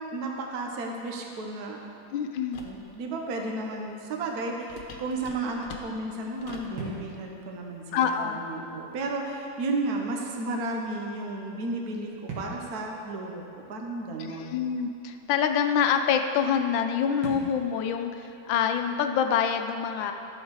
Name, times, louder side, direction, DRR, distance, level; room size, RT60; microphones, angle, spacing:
voice 1, 0.1-1.8 2.6-13.4 13.7-14.5, right 2 dB, 55° right, 1 dB, 1.4 m, -33 dB
voice 2, 2.1-2.6 7.9-8.4 14.2-20.1, left 7 dB, 85° left, 6 dB, 1.4 m, -26 dB
sound 1, 2.5-2.8 4.7-6.8, left 4 dB, 70° left, 1.5 m, -44 dB
sound 2, 2.9-19.4, right 4 dB, 80° right, 2.6 m, -48 dB
13.0 x 6.5 x 4.7 m, 2.8 s
omnidirectional pair, 2.1 m